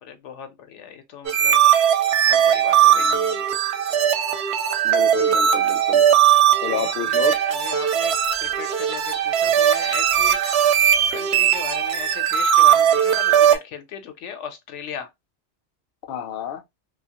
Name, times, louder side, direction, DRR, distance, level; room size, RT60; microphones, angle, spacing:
voice 1, 0.0-1.6 2.2-3.1 6.6-8.1 8.4-10.4 11.1-15.1, left 8 dB, 90° left, 0.9 m, -37 dB
sound 1, 1.2-13.5, right 9 dB, 70° right, 0.8 m, -19 dB
voice 2, 2.9-3.4 4.8-6.0 6.6-7.4 16.1-16.6, left 9 dB, 65° left, 0.7 m, -30 dB
2.7 x 2.3 x 2.7 m
omnidirectional pair, 1.2 m